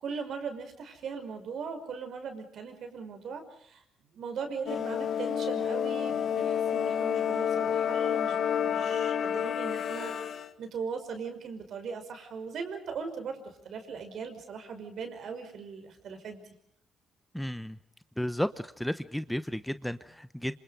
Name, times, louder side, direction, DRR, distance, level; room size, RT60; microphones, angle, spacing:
voice 1, 0.0-3.8 4.1-10.2 10.6-16.4, right 5 dB, 65° right, 7 dB, 5.7 m, -39 dB
sound 1, 4.7-10.5, left 8 dB, 60° left, 1.5 m, -29 dB
voice 2, 17.3-17.8 18.2-20.6, equal, 5° left, 13 dB, 0.9 m, -33 dB
27.0 x 26.5 x 5.2 m, 0.68 s
cardioid pair, 90°, 0 cm